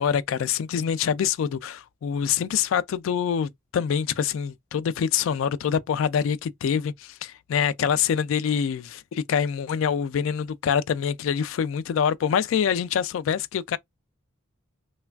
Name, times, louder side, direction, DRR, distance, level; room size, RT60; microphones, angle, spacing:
voice 1, 0.0-13.8, left 7 dB, 70° left, 0.3 m, -25 dB
3.2 x 2.3 x 2.2 m
head